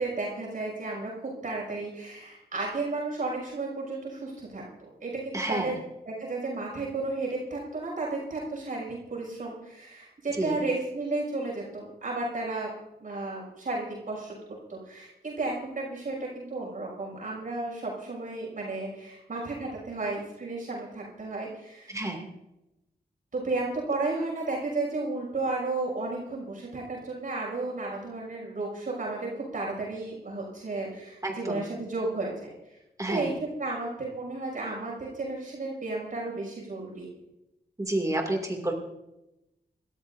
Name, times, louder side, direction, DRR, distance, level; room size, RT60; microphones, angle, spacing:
voice 1, 0.0-4.6 5.0-5.7 6.0-12.7 13.0-14.3 14.7-22.0 23.3-32.5 33.1-33.3 33.6-37.1, right 3 dB, 50° right, -3 dB, 6.4 m, -33 dB
voice 2, 5.3-5.8 10.4-10.6 21.9-22.3 31.2-31.6 33.0-33.3 37.8-38.7, right 1 dB, 20° right, 1 dB, 2.6 m, -30 dB
29.0 x 14.0 x 2.7 m, 0.94 s
wide cardioid pair, 130°, 17 cm